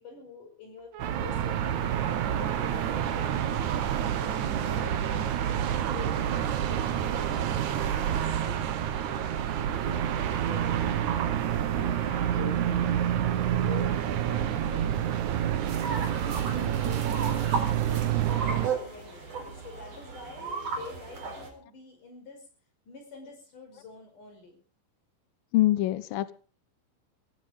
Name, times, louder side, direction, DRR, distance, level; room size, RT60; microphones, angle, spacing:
voice 1, 0.0-1.8 2.3-3.7 4.1-8.7 9.0-11.1 11.5-14.9 15.9-22.5 22.9-24.6, left 4 dB, 40° left, 5 dB, 6.4 m, -46 dB
sound 1, 0.8-6.8, right 8 dB, 65° right, 3.1 m, -45 dB
sound 2, 1.0-18.7, right 10 dB, 85° right, 1.7 m, -28 dB
sound 3, 15.7-21.5, right 4 dB, 40° right, 5.7 m, -35 dB
voice 2, 25.5-26.3, left 15 dB, 80° left, 15 dB, 2.0 m, -24 dB
16.5 x 16.0 x 5.0 m, 0.38 s
omnidirectional pair, 5.6 m